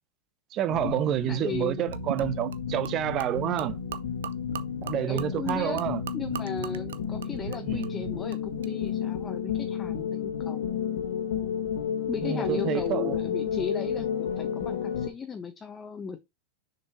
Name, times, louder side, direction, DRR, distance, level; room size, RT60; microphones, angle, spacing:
voice 1, 0.5-3.8 4.8-6.0 7.6-8.0 12.2-13.1, right 11 dB, 40° right, 0.9 m, -29 dB
sound 1, 0.7-15.1, left 8 dB, 70° left, 1.5 m, -32 dB
voice 2, 1.3-1.8 5.1-5.8 6.1-10.8 12.1-16.2, left 5 dB, 20° left, 1.0 m, -36 dB
Gurgling / Liquid, 1.9-8.7, right 9 dB, 70° right, 0.6 m, -41 dB
6.6 x 5.6 x 2.9 m
figure-of-eight pair, 90°, 0 cm